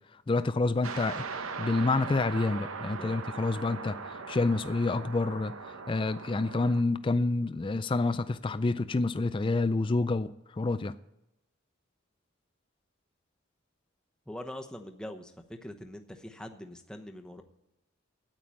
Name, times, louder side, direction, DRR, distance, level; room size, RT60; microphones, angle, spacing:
voice 1, 0.3-5.5 5.9-10.9, left 3 dB, 25° left, 12 dB, 0.3 m, -28 dB
sound 1, 0.8-6.8, right 5 dB, 75° right, 0.8 m, -40 dB
voice 2, 2.8-3.1 14.3-15.3 15.6-17.4, left 1 dB, 5° left, 4 dB, 0.9 m, -43 dB
9.3 x 8.9 x 8.5 m, 0.88 s
head